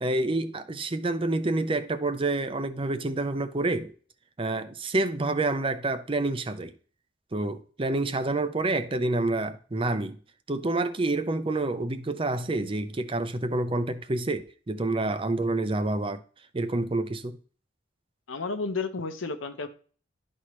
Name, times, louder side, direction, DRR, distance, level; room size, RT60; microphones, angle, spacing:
voice 1, 0.0-3.9 4.4-6.7 7.3-10.2 10.5-16.2 16.5-17.4, right 2 dB, 25° right, 0.5 m, -28 dB
voice 2, 18.3-19.7, left 4 dB, 90° left, 0.9 m, -32 dB
12.0 x 4.3 x 3.1 m
head